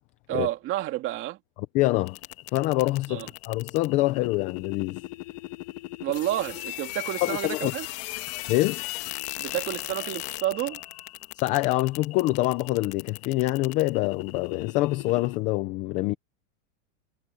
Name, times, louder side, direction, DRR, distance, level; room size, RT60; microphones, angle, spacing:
voice 1, 0.3-1.4 3.1-3.3 6.0-7.9 9.4-10.8, right 14 dB, 30° right, 2.7 m, -30 dB
voice 2, 1.7-2.2 2.5-5.0 7.2-7.7 8.5-8.8 11.4-16.1, left 18 dB, 20° left, 0.4 m, -25 dB
sound 1, 2.1-15.4, left 19 dB, 35° left, 1.5 m, -38 dB
supercardioid pair, 160°, 39 cm